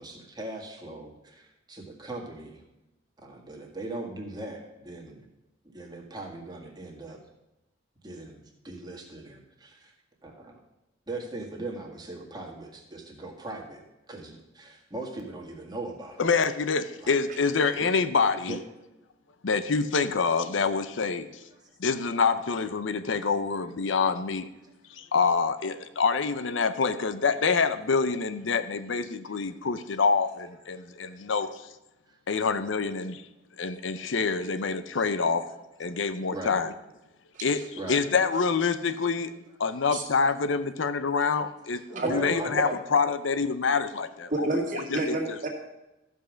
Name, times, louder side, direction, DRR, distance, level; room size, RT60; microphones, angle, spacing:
voice 1, 0.0-2.6 3.2-5.3 5.6-7.2 8.0-9.9 10.2-10.6 11.1-16.2 17.0-17.2 17.6-17.8 18.5-18.6 21.6-21.7 29.3-29.4 31.1-31.2 32.1-32.2 33.9-34.1 35.9-36.6 37.8-38.1 39.7-39.8 41.9-42.8, right 2 dB, 20° right, 0 dB, 1.9 m, -39 dB
voice 2, 16.2-18.6 19.4-21.3 21.8-24.5 24.9-31.5 32.3-33.2 33.6-35.5 35.8-36.7 37.4-37.6 37.9-39.3 39.6-41.8 42.1-44.5 44.9-45.2, left 5 dB, 75° left, 11 dB, 0.6 m, -26 dB
voice 3, 44.3-45.5, right 2 dB, 45° right, -1 dB, 2.2 m, -30 dB
14.0 x 5.4 x 6.2 m, 0.96 s
head